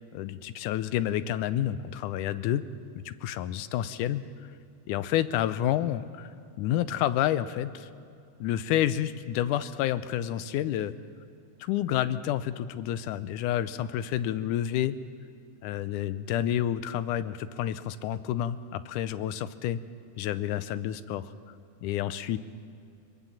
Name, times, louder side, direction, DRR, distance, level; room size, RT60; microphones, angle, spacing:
voice 1, 0.1-2.6 3.0-4.2 4.9-6.3 6.6-7.9 8.4-11.0 11.6-15.0 15.6-19.8 20.2-21.3 21.8-22.4, left 11 dB, 80° left, 14 dB, 2.2 m, -29 dB
23.0 x 23.0 x 7.3 m, 2.5 s
omnidirectional pair, 3.7 m